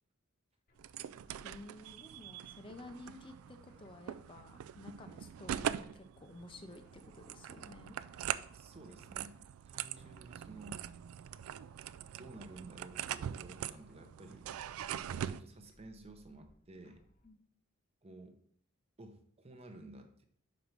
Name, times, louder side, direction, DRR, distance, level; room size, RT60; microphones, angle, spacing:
sound 1, 0.7-17.3, equal, 40° left, 0.9 m, -68 dB
sound 2, 0.8-15.4, right 10 dB, 75° right, 0.3 m, -43 dB
voice 1, 1.4-8.0 17.2-17.4, left 2 dB, 25° left, 7 dB, 0.5 m, -52 dB
voice 2, 8.5-9.4 9.7-10.8 12.2-14.5 15.1-17.0 18.0-18.4 19.0-20.2, right 2 dB, 30° right, 6 dB, 0.7 m, -53 dB
5.3 x 5.1 x 4.5 m, 0.63 s
head